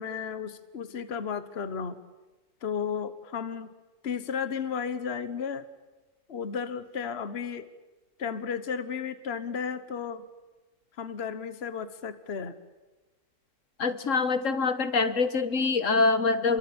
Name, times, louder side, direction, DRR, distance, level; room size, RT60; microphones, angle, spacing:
voice 1, 0.0-2.0 2.6-3.7 4.0-5.6 6.3-7.7 8.2-10.2 11.0-12.5, left 6 dB, 50° left, 12 dB, 1.4 m, -33 dB
voice 2, 13.8-16.6, left 4 dB, 70° left, 12 dB, 1.7 m, -25 dB
28.0 x 23.5 x 8.7 m, 1.2 s
omnidirectional pair, 1.4 m